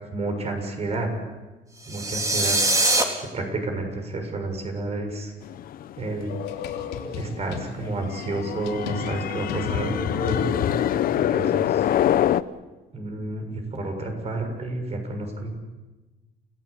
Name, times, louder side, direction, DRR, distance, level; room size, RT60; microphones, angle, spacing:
voice 1, 0.1-1.1 1.9-2.6 3.3-5.3 6.0-6.3 7.1-10.4 11.1-11.8 12.9-15.5, right 2 dB, 40° right, 5 dB, 6.8 m, -30 dB
sound 1, 1.8-3.0, right 2 dB, 20° right, 3.9 m, -22 dB
sound 2, 5.4-12.4, left 11 dB, 60° left, 0.8 m, -26 dB
sound 3, 6.3-7.7 8.2-8.3 8.7-11.1, left 5 dB, 85° left, 3.3 m, -31 dB
29.0 x 16.5 x 8.5 m, 1.2 s
cardioid pair, 110°, 17 cm